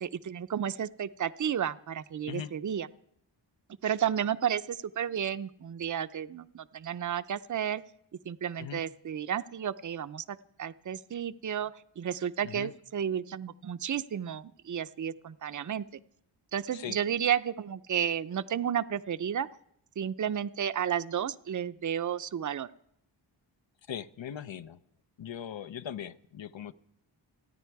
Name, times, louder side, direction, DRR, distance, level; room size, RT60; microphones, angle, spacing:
voice 1, 0.0-2.9 3.8-7.8 8.3-15.9 16.5-19.5 20.0-22.7, right 9 dB, 40° right, 14 dB, 0.5 m, -32 dB
voice 2, 23.9-24.8 25.2-26.7, left 9 dB, 75° left, 13 dB, 0.8 m, -39 dB
29.0 x 10.0 x 4.7 m, 0.71 s
wide cardioid pair, 100°, 46 cm